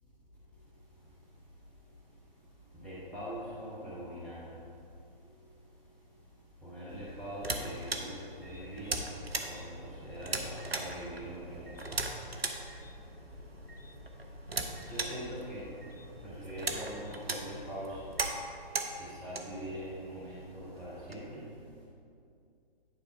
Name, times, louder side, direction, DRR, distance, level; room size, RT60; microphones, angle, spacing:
voice 1, 2.7-4.5 6.6-9.2 9.4-11.9 14.8-15.7 16.2-18.0 19.0-21.4, equal, 5° left, -8 dB, 0.5 m, -42 dB
sound 1, 6.9-21.1, right 2 dB, 80° right, 1.0 m, -40 dB
sound 2, 8.4-18.3, left 1 dB, 75° left, 1.6 m, -52 dB
10.0 x 4.8 x 4.6 m, 2.5 s
figure-of-eight pair, 135°, 30 cm